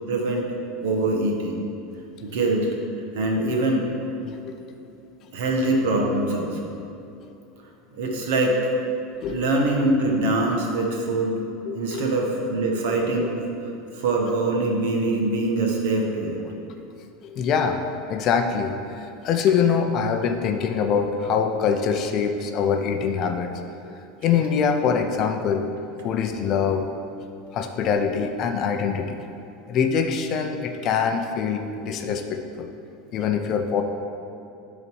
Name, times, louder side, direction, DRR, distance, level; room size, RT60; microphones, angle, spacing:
voice 1, 0.1-0.5 0.8-1.6 2.2-2.7 3.1-3.9 5.3-6.7 7.9-8.7 9.3-11.4 11.7-13.4 13.9-16.4, right 2 dB, 70° right, 0 dB, 1.3 m, -23 dB
voice 2, 4.2-4.6 9.2-9.4 11.7-12.0 13.2-13.3 17.2-17.8 18.1-23.5 24.2-25.7 26.0-27.0 27.5-29.2 29.7-32.7 33.1-33.8, left 6 dB, 30° left, 5 dB, 0.5 m, -24 dB
10.5 x 4.0 x 4.6 m, 2.7 s
supercardioid pair, 170°, 0 cm